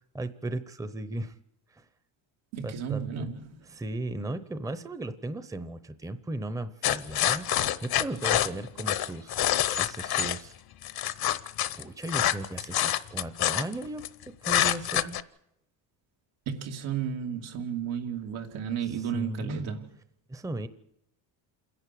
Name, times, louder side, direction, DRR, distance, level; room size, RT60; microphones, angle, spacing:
voice 1, 0.1-1.3 1.7-1.8 2.6-3.3 3.7-10.5 11.7-14.0 14.4-15.2 19.1-19.7 20.3-20.7, right 2 dB, 5° right, 0.8 m, -36 dB
voice 2, 2.5-3.6 16.5-19.9, right 8 dB, 90° right, 3.0 m, -33 dB
sound 1, 6.8-10.4 10.8-14.1 14.4-15.2, left 12 dB, 50° left, 0.9 m, -26 dB
28.0 x 11.0 x 8.5 m
cardioid pair, 145°, 46 cm